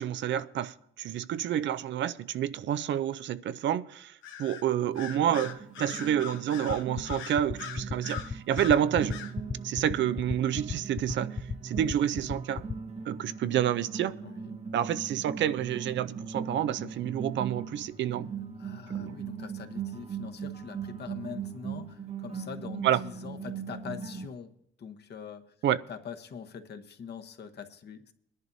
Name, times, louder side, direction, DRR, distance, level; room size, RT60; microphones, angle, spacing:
voice 1, 0.0-9.2 9.6-11.4 11.6-12.7 13.1-14.2 14.7-18.3 18.9-19.2 22.8-23.0 25.6-25.8, right 10 dB, 65° right, 0.5 m, -29 dB
Bird vocalization bird call bird song, 4.2-4.6 5.0-8.8 9.1-9.3, left 8 dB, 80° left, 1.1 m, -41 dB
sound 1, 4.9-24.3, right 6 dB, 35° right, 0.8 m, -40 dB
sound 2, 6.7-12.7, left 5 dB, 20° left, 0.4 m, -33 dB
voice 2, 14.2-14.5 18.6-24.5 24.8-25.5 25.9-28.1, left 6 dB, 55° left, 1.1 m, -43 dB
21.0 x 11.0 x 2.7 m
cardioid pair, 90°, 20 cm